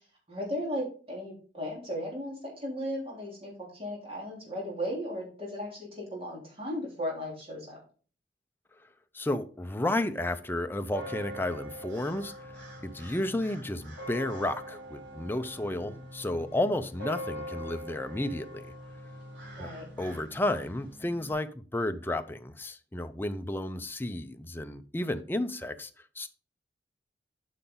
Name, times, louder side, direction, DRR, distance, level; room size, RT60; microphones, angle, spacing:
voice 1, 0.3-7.8 15.6-15.9 19.6-19.8, equal, 35° right, 3.3 m, -36 dB
voice 2, 9.1-12.6 12.8-18.7 19.6-19.7 20.0-25.9 26.2-26.3, left 1 dB, 10° left, 0.5 m, -32 dB
sound 1, 10.9-21.3, equal, 80° right, 4.2 m, -43 dB
8.1 x 5.7 x 3.8 m
head